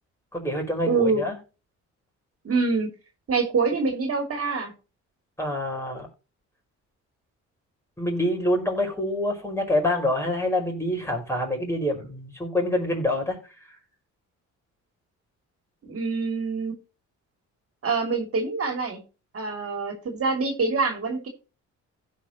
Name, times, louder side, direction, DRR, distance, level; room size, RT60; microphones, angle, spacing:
voice 1, 0.3-1.4 5.4-6.1 8.0-13.4, left 1 dB, 10° left, 5.5 m, -26 dB
voice 2, 0.8-1.2 2.4-2.9 3.3-4.7 15.8-16.7 17.8-19.0 19.3-21.3, right 4 dB, 50° right, 2.7 m, -25 dB
16.0 x 5.5 x 3.0 m
cardioid pair, 90°, 30 cm